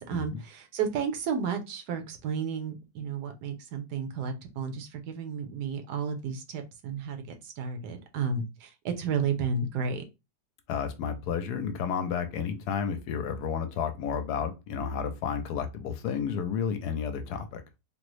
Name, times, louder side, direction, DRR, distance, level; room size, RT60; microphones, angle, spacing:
voice 1, 0.0-10.0, right 6 dB, 75° right, 1.3 m, -32 dB
voice 2, 10.7-17.6, left 7 dB, 75° left, 1.1 m, -31 dB
3.7 x 2.0 x 3.0 m
omnidirectional pair, 1.8 m